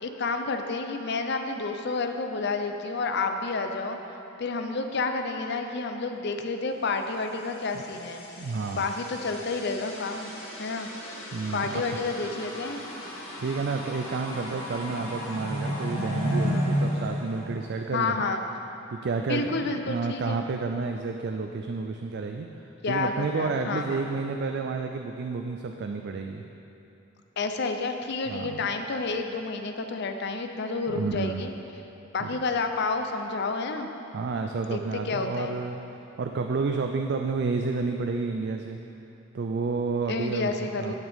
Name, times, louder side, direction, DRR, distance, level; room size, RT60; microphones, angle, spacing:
voice 1, 0.0-4.0 4.4-8.2 8.7-10.3 10.6-10.9 11.5-12.8 17.9-18.4 19.3-20.5 22.8-24.0 27.4-31.5 32.1-33.9 34.7-35.6 40.1-40.9, left 3 dB, 55° left, 6 dB, 0.6 m, -30 dB
sound 1, 7.4-18.1, equal, 90° left, 1.9 m, -33 dB
voice 2, 8.4-8.8 11.3-11.8 13.4-18.2 18.9-26.4 28.3-28.6 30.9-31.5 32.2-32.4 34.1-38.8 39.3-40.5 40.8-40.9, right 4 dB, 55° right, 4 dB, 0.4 m, -30 dB
15.5 x 6.2 x 3.6 m, 2.9 s
head